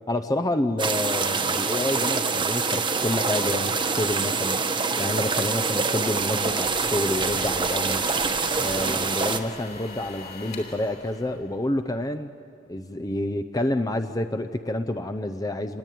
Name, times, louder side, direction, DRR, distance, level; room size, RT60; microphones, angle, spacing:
voice 1, 0.1-4.6 5.0-8.0 8.5-12.3 12.7-15.8, left 1 dB, 20° left, 9 dB, 0.6 m, -28 dB
sound 1, 0.8-9.4, right 4 dB, 25° right, 1.2 m, -25 dB
sound 2, 6.3-11.9, left 4 dB, 50° left, 4.0 m, -43 dB
27.0 x 21.0 x 9.3 m, 2.5 s
head